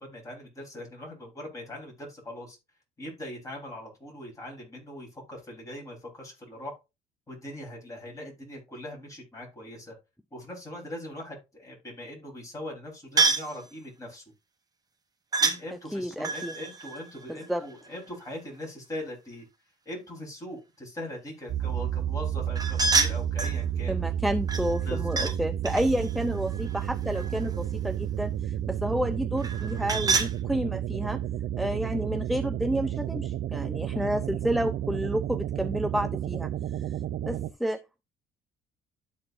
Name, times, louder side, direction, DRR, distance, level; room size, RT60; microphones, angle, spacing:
voice 1, 0.0-2.6 3.0-6.7 7.3-9.9 10.3-14.2 15.4-19.4 19.9-24.0 24.9-25.3, left 1 dB, 20° left, 4.1 m, -41 dB
sound 1, 13.2-13.6 15.3-15.6 16.2-18.0 22.5-23.6 24.5-25.4 25.6-27.5 29.4-30.3, right 4 dB, 20° right, 1.0 m, -28 dB
voice 2, 15.9-16.5 17.3-17.6 23.9-31.2 31.6-36.9 37.3-38.0, equal, ahead, 0.4 m, -30 dB
sound 2, 21.5-37.5, right 10 dB, 55° right, 0.5 m, -31 dB
12.5 x 4.3 x 2.6 m
cardioid pair, 110°, 17 cm